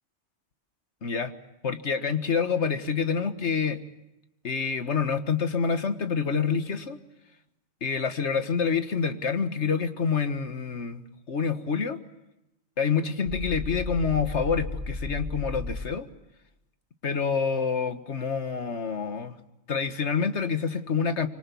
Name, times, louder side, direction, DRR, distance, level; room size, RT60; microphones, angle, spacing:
voice 1, 1.0-1.3 1.6-3.8 4.4-7.0 7.8-11.0 11.3-12.0 12.8-16.1 17.0-19.3 19.7-21.3, left 6 dB, 80° left, 8 dB, 1.9 m, -27 dB
sound 1, 13.3-15.9, left 2 dB, 35° right, 4.5 m, -34 dB
25.5 x 25.0 x 7.0 m, 0.91 s
omnidirectional pair, 1.1 m